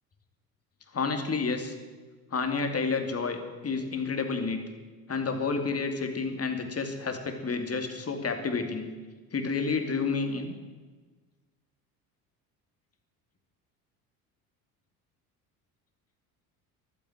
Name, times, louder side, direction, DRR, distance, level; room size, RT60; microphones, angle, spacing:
voice 1, 0.9-1.7 2.3-4.6 5.1-8.9 9.3-10.5, left 4 dB, 30° left, 5 dB, 2.6 m, -30 dB
12.0 x 9.8 x 9.0 m, 1.3 s
hypercardioid pair, 65°, 46 cm